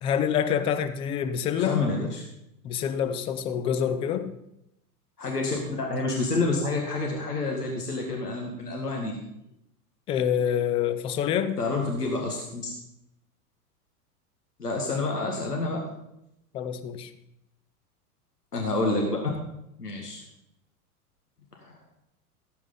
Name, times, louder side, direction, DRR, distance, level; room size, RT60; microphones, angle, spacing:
voice 1, 0.0-1.8 2.6-4.3 10.1-11.6 16.5-17.1, left 8 dB, 15° left, 0.3 m, -26 dB
voice 2, 1.6-2.2 5.2-9.1 11.6-12.7 14.6-15.8 18.5-19.2 19.8-20.2 21.6-21.9, left 3 dB, 80° left, 2.0 m, -28 dB
17.5 x 8.3 x 4.0 m
figure-of-eight pair, 85°, 46 cm